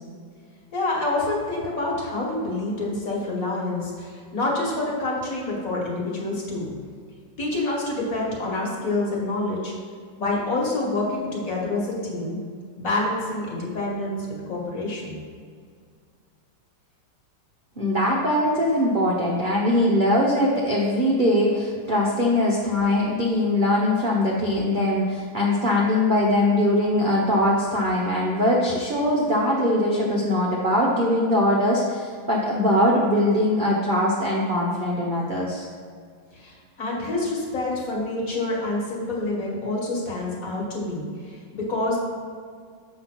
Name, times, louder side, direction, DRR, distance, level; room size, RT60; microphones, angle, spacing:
voice 1, 0.7-6.7 7.4-9.7 10.2-12.4 12.8-15.2 36.3-42.0, left 2 dB, 50° left, -3 dB, 1.6 m, -27 dB
voice 2, 17.8-35.7, left 1 dB, 50° right, -4 dB, 0.6 m, -21 dB
6.9 x 3.4 x 5.8 m, 2.1 s
omnidirectional pair, 2.0 m